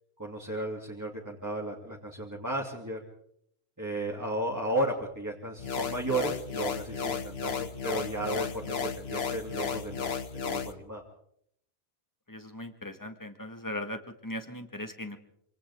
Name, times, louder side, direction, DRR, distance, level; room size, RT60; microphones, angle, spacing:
voice 1, 0.2-3.0 3.8-11.0, right 1 dB, 15° right, -3 dB, 2.8 m, -34 dB
sound 1, 5.6-10.7, left 6 dB, 70° left, 1.4 m, -34 dB
voice 2, 12.3-15.2, left 1 dB, 20° left, 6 dB, 1.8 m, -39 dB
26.5 x 26.5 x 3.7 m, 0.71 s
omnidirectional pair, 1.1 m